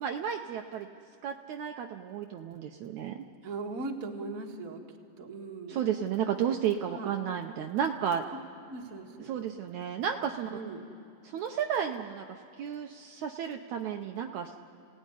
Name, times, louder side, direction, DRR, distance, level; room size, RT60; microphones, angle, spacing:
voice 1, 0.0-0.9 1.2-3.2 5.7-8.2 9.3-10.5 11.2-14.5, right 8 dB, 70° right, 4 dB, 2.0 m, -32 dB
voice 2, 3.4-4.8 5.2-5.8 6.9-7.2 8.3-8.4 8.7-9.3 10.5-10.8, right 3 dB, 30° right, 1 dB, 1.8 m, -39 dB
29.5 x 17.0 x 9.9 m, 2.7 s
omnidirectional pair, 3.8 m